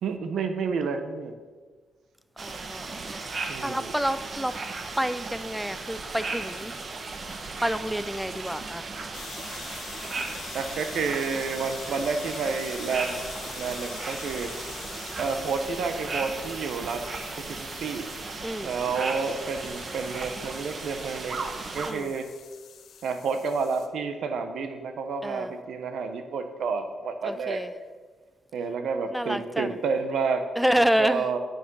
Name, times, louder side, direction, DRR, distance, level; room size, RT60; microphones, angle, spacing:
voice 1, 0.0-1.3 3.5-3.9 10.5-13.2 13.6-14.5 15.2-17.0 17.4-18.1 18.6-21.4 21.7-22.3 23.0-27.6 28.5-30.4 30.8-31.4, right 5 dB, 75° right, 1.1 m, -30 dB
voice 2, 2.4-4.6 4.9-6.7 7.6-8.9 18.4-18.7 21.8-22.1 25.2-25.5 27.2-27.7 29.1-29.8 30.6-31.3, equal, 5° right, 0.5 m, -28 dB
sound 1, 2.4-21.9, right 3 dB, 45° right, 1.1 m, -36 dB
sound 2, 9.1-23.9, left 7 dB, 70° left, 0.8 m, -44 dB
9.2 x 8.5 x 5.6 m
cardioid pair, 100°, 0 cm